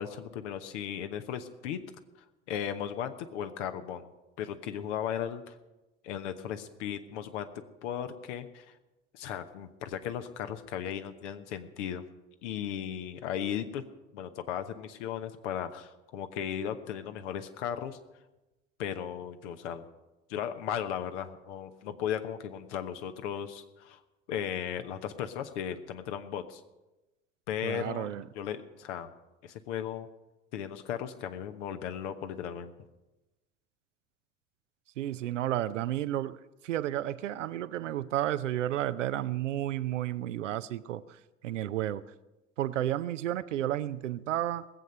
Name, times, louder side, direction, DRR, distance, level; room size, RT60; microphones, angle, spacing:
voice 1, 0.0-1.8 2.5-4.1 4.4-5.6 6.0-7.5 7.8-8.6 9.1-12.0 12.4-13.8 14.1-18.0 18.8-19.9 20.3-24.0 24.3-26.6 27.5-28.1 28.3-29.1 29.4-30.1 30.5-32.7, left 9 dB, 70° left, 9 dB, 1.1 m, -36 dB
voice 2, 27.6-28.2 35.0-41.0 41.4-42.0 42.6-44.7, right 12 dB, 80° right, 14 dB, 0.6 m, -32 dB
19.5 x 7.9 x 5.5 m, 1.0 s
figure-of-eight pair, 65°, 36 cm